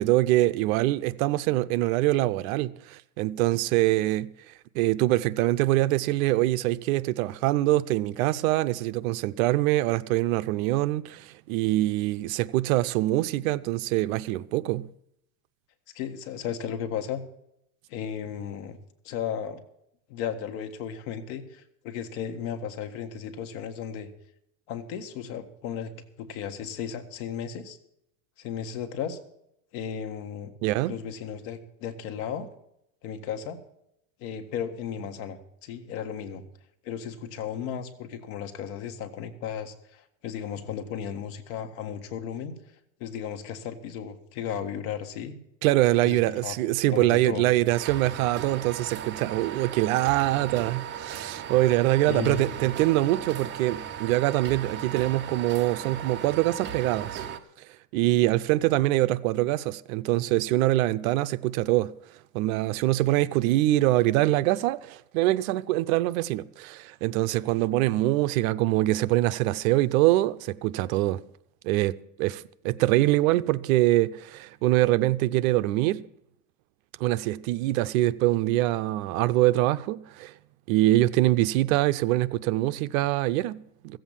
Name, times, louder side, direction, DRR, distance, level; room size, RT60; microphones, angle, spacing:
voice 1, 0.0-4.3 4.7-14.9 30.6-31.0 45.6-57.2 57.6-57.7 57.9-61.9 62.3-71.2 71.6-76.0 77.0-80.3 80.7-84.0, right 16 dB, 60° right, 0.7 m, -24 dB
voice 2, 15.9-17.2 17.9-18.8 19.0-19.6 20.1-24.1 24.7-25.9 26.2-27.8 28.4-29.2 29.7-30.5 30.9-32.5 33.0-33.6 34.2-36.4 36.8-42.6 43.0-45.4 46.0-47.5 52.1-52.7, left 8 dB, 60° left, 1.8 m, -35 dB
sound 1, 47.7-57.4, right 9 dB, 25° right, 0.8 m, -37 dB
15.0 x 8.0 x 7.1 m
supercardioid pair, 145°, 46 cm